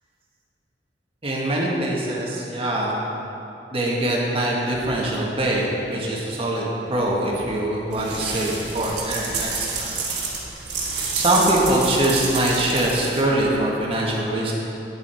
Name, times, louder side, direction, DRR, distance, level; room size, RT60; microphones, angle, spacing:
voice 1, 1.2-3.0 3.7-9.9 11.1-14.5, right 1 dB, 30° right, -3 dB, 1.4 m, -23 dB
sound 1, 7.9-13.5, right 4 dB, 65° right, 1.8 m, -29 dB
10.0 x 7.2 x 4.4 m, 2.9 s
head